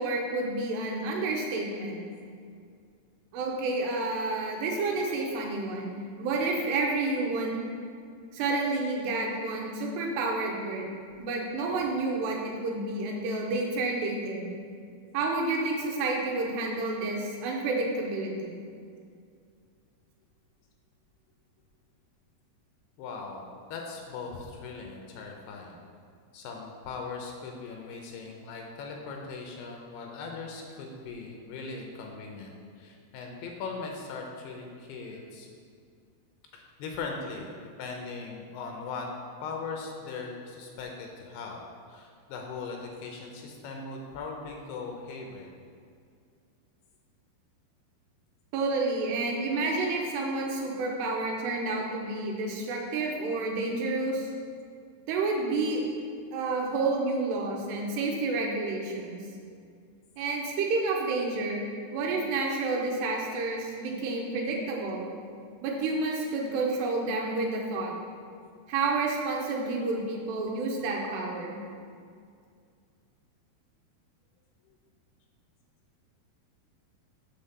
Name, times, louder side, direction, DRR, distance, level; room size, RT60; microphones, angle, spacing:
voice 1, 0.0-2.0 3.3-7.7 8.3-10.9 11.2-14.6 15.1-18.6 48.5-54.3 55.1-55.9 56.3-59.2 60.2-65.1 65.6-67.9 68.7-71.6, right 3 dB, 80° right, 0 dB, 3.1 m, -30 dB
voice 2, 23.0-25.8 26.3-35.5 36.5-37.5 37.8-39.1 39.4-41.6 41.9-45.5, left 4 dB, 80° left, 1 dB, 2.7 m, -39 dB
7.3 x 4.2 x 6.6 m, 2.3 s
omnidirectional pair, 4.8 m